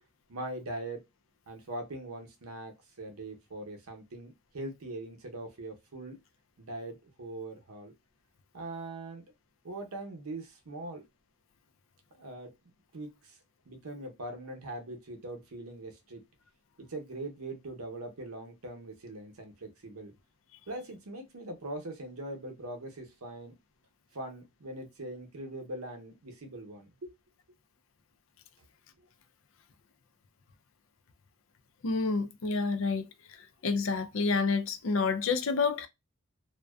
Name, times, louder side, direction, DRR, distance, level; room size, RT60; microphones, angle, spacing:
voice 1, 0.3-1.0 1.5-6.2 6.6-7.9 8.5-9.2 9.6-11.1 12.1-12.5 12.9-13.4 13.7-16.3 16.9-20.1 20.7-23.6 24.1-27.1 29.0-29.1, right 2 dB, 85° right, 0.8 m, -41 dB
voice 2, 31.8-33.0 33.6-35.9, left 4 dB, 65° left, 0.4 m, -28 dB
2.5 x 2.2 x 2.3 m
head